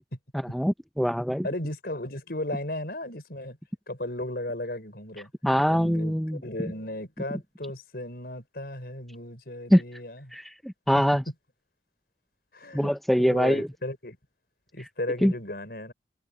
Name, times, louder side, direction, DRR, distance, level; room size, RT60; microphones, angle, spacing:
voice 1, 0.5-1.5 5.4-6.4 9.7-9.8 10.3-11.2 12.7-13.7 15.2-15.3, equal, ahead, 0.6 m, -23 dB
voice 2, 1.4-3.6 3.9-5.3 5.7-10.3 12.5-12.9 13.2-14.2 14.7-15.9, left 1 dB, 60° left, 6.3 m, -35 dB
head